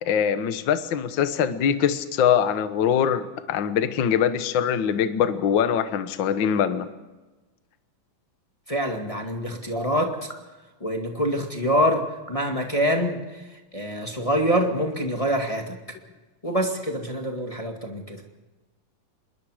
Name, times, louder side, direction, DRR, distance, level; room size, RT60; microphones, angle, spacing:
voice 1, 0.0-6.9, left 8 dB, 80° left, 10 dB, 1.0 m, -23 dB
voice 2, 8.7-10.2 10.8-15.8 16.4-18.2, equal, 15° left, 2 dB, 1.3 m, -25 dB
26.5 x 22.0 x 5.0 m, 1.2 s
omnidirectional pair, 4.1 m